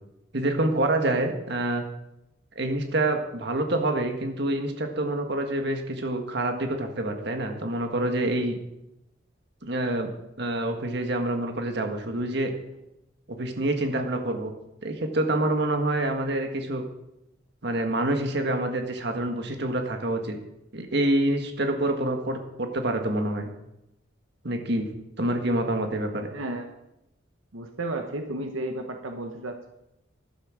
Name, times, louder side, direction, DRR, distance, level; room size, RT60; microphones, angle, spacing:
voice 1, 0.3-1.8 2.5-8.6 9.6-10.1 10.4-12.5 13.3-14.5 14.8-16.8 17.6-20.3 20.7-23.5 24.4-24.9 25.2-26.3, right 1 dB, 55° right, 4 dB, 1.7 m, -27 dB
voice 2, 26.3-26.7 27.5-29.7, right 2 dB, 85° right, 5 dB, 1.2 m, -33 dB
13.5 x 11.5 x 5.1 m, 0.88 s
head